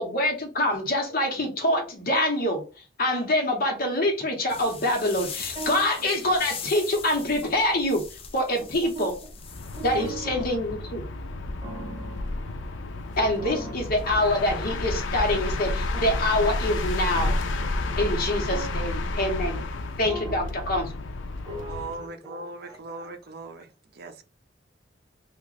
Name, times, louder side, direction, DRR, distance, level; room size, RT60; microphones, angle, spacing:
voice 1, 0.0-2.6 3.0-8.0 8.3-9.1 9.8-11.0 13.2-17.4 18.0-19.6 20.0-20.9, left 1 dB, 50° left, 1.1 m, -25 dB
sound 1, 4.5-10.1, left 6 dB, 30° left, 0.5 m, -40 dB
voice 2, 5.5-6.1 8.8-9.3 9.8-10.5 11.6-12.9 13.3-13.7 15.9-16.0 17.1-17.3 17.9-18.7 19.5-19.6 20.1-20.5 21.4-23.1 23.6-23.7, right 2 dB, 20° right, 1.2 m, -39 dB
sound 2, 9.4-22.1, left 2 dB, 90° left, 0.5 m, -31 dB
voice 3, 21.7-23.7 23.9-24.2, right 3 dB, 55° right, 0.5 m, -39 dB
3.0 x 2.4 x 3.9 m
head